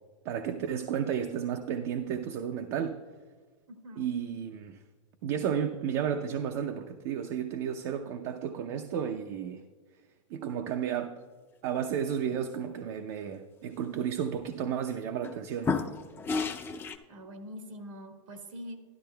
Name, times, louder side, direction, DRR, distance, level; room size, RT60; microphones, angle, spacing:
voice 1, 0.2-3.0 4.0-4.8 5.2-9.6 10.3-11.2 11.6-15.7, right 8 dB, 55° right, 6 dB, 0.5 m, -32 dB
voice 2, 3.7-4.1 17.1-18.8, equal, 80° right, 4 dB, 1.5 m, -44 dB
sound 1, 14.1-14.4 14.9-15.3 15.6-17.0, left 4 dB, 15° left, 0.4 m, -31 dB
12.0 x 12.0 x 2.2 m, 1.4 s
hypercardioid pair, 125°, 16 cm